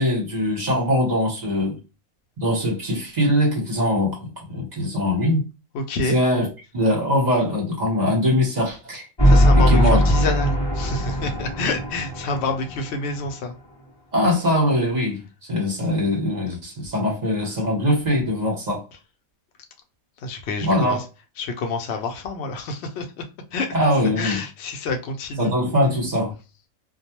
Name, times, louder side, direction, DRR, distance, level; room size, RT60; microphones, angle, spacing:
voice 1, 0.0-1.8 2.4-5.4 6.1-9.1 9.5-10.0 14.1-18.8 20.6-21.0 23.7-24.4 25.4-26.3, left 1 dB, 35° right, 0.9 m, -22 dB
voice 2, 5.7-6.2 9.2-13.5 20.2-21.0 21.4-23.1 23.5-23.7 24.2-25.5, left 3 dB, 65° left, 0.7 m, -28 dB
sound 1, 9.2-13.3, equal, 25° left, 0.7 m, -19 dB
2.3 x 2.2 x 2.8 m
omnidirectional pair, 1.4 m